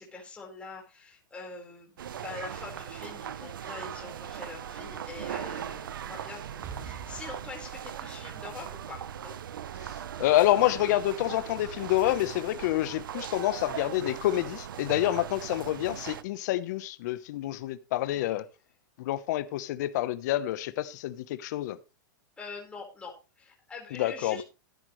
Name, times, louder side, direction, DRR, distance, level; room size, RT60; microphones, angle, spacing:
voice 1, 0.0-9.4 18.1-18.3 22.4-24.4, left 4 dB, 10° left, 4.4 m, -44 dB
sound 1, 2.0-16.2, right 9 dB, 85° right, 0.9 m, -39 dB
Explosion, 6.6-10.4, right 7 dB, 25° right, 1.7 m, -48 dB
voice 2, 10.2-18.4 19.0-21.8 23.9-24.4, left 14 dB, 60° left, 0.9 m, -28 dB
13.5 x 10.0 x 3.2 m
hypercardioid pair, 140°, 11 cm